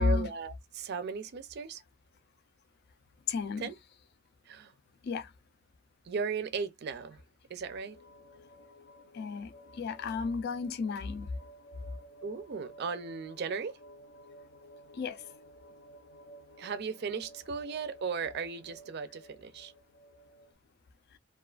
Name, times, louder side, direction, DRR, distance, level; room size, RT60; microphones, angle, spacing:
voice 1, 0.0-1.8 3.6-3.7 4.5-4.7 6.1-7.2 7.5-8.0 12.2-13.8 16.6-19.7, right 5 dB, 55° right, 0.4 m, -36 dB
voice 2, 3.3-3.7 5.0-5.3 9.1-9.5 9.8-11.3 14.9-15.2, left 4 dB, 55° left, 0.4 m, -32 dB
sound 1, 7.6-20.5, right 1 dB, 80° left, 0.7 m, -54 dB
2.4 x 2.3 x 2.3 m
head